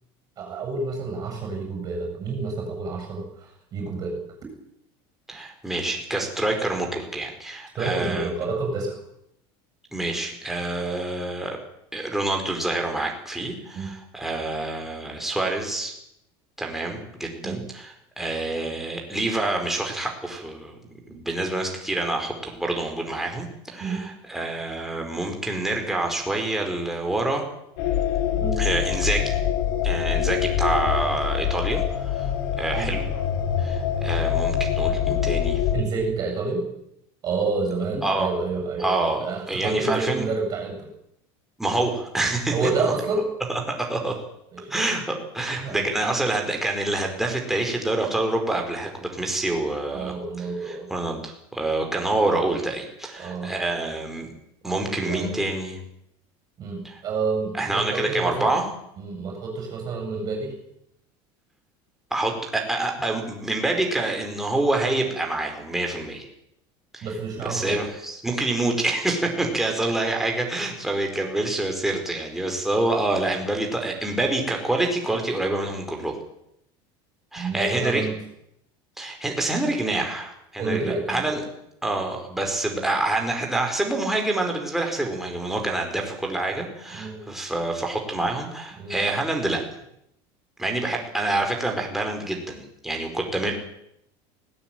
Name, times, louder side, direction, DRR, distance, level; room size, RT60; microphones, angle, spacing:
voice 1, 0.4-4.2 7.8-9.0 13.7-13.9 17.4-17.6 23.8-24.1 28.4-28.6 32.7-33.0 35.7-36.7 37.2-38.9 39.2-40.9 42.5-43.3 44.5-44.8 45.5-46.2 49.9-50.9 53.2-53.5 54.6-55.4 56.6-58.5 59.0-60.6 67.0-67.8 77.4-78.1 80.6-81.4 86.9-87.3 88.8-89.0, right 3 dB, 30° right, 3 dB, 7.7 m, -29 dB
voice 2, 5.3-8.3 9.9-11.6 11.9-15.9 16.6-20.7 21.1-27.4 28.6-29.4 29.8-33.0 33.6-35.6 38.0-38.3 38.8-40.3 41.6-42.9 43.5-44.2 44.7-50.1 50.7-54.3 54.6-55.8 57.5-58.7 62.1-66.3 66.9-67.1 67.4-76.2 77.3-78.1 79.0-81.4 81.8-89.6 90.6-93.5, right 2 dB, 5° right, 1 dB, 4.7 m, -27 dB
sound 1, 27.8-35.8, left 9 dB, 70° left, 3.8 m, -24 dB
19.5 x 19.0 x 9.1 m, 0.77 s
cardioid pair, 165°, 12 cm